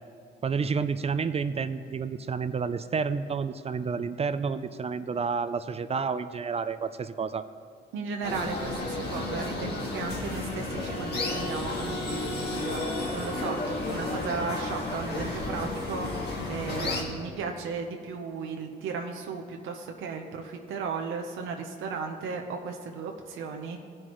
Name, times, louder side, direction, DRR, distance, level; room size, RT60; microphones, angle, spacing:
voice 1, 0.4-7.4, right 5 dB, 30° right, 12 dB, 0.4 m, -30 dB
voice 2, 7.9-13.6 13.9-16.1 16.5-23.8, right 5 dB, 85° right, 3 dB, 0.8 m, -35 dB
sound 1, 8.2-17.0, left 2 dB, 55° left, 1.7 m, -32 dB
17.0 x 6.3 x 3.0 m, 2.4 s
cardioid pair, 90°, 20 cm